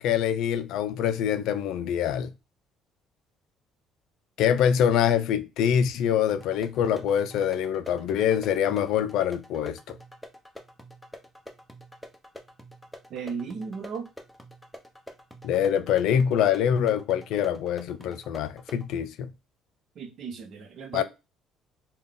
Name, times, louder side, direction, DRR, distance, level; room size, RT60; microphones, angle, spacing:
voice 1, 0.0-2.3 4.4-10.0 15.4-19.3 20.9-21.0, left 9 dB, 70° left, 0.3 m, -25 dB
sound 1, 6.3-18.9, equal, 5° left, 0.5 m, -47 dB
voice 2, 13.1-14.1 20.0-21.0, right 5 dB, 50° right, 0.7 m, -35 dB
3.7 x 2.3 x 3.5 m
cardioid pair, 155°, 0 cm